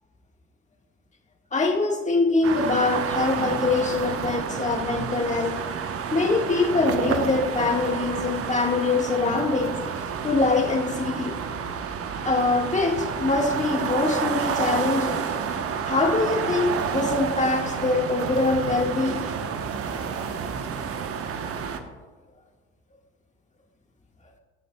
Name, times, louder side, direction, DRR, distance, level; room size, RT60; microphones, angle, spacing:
voice 1, 1.5-5.6 6.1-9.8 10.2-11.4 12.2-15.2 15.8-19.2, left 3 dB, 20° left, 2 dB, 1.6 m, -24 dB
sound 1, 2.4-21.8, right 6 dB, 45° right, 1.0 m, -29 dB
14.5 x 9.1 x 2.3 m, 1.4 s
supercardioid pair, 75°, 33 cm